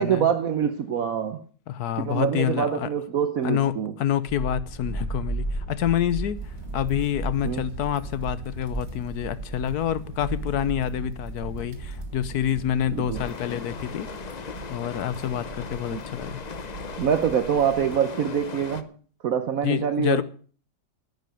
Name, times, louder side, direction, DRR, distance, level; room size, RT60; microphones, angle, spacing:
voice 1, 0.0-1.4 2.0-3.9 7.4-7.6 12.9-13.2 15.9-16.0 17.0-18.9 19.2-20.2, right 8 dB, 60° right, 1.1 m, -25 dB
voice 2, 1.7-2.9 3.4-14.1 14.7-16.4 19.6-20.2, left 10 dB, 65° left, 1.3 m, -27 dB
sound 1, 4.3-13.3, right 3 dB, 15° left, 5.4 m, -35 dB
sound 2, 6.3-18.0, right 3 dB, 85° right, 2.8 m, -43 dB
sound 3, 13.1-18.8, left 6 dB, 50° left, 0.4 m, -38 dB
11.0 x 9.3 x 7.7 m
omnidirectional pair, 1.9 m